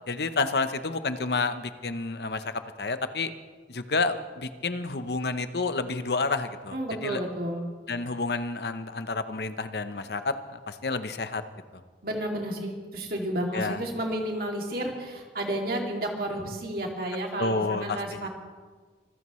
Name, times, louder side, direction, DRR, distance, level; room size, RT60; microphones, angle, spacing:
voice 1, 0.1-2.5 2.8-3.3 3.7-7.2 7.9-11.4 13.5-13.8 17.4-18.3, left 3 dB, 65° left, 10 dB, 0.8 m, -30 dB
voice 2, 6.7-7.7 12.0-18.3, right 1 dB, 55° right, 0 dB, 2.5 m, -31 dB
25.0 x 15.0 x 3.2 m, 1.5 s
head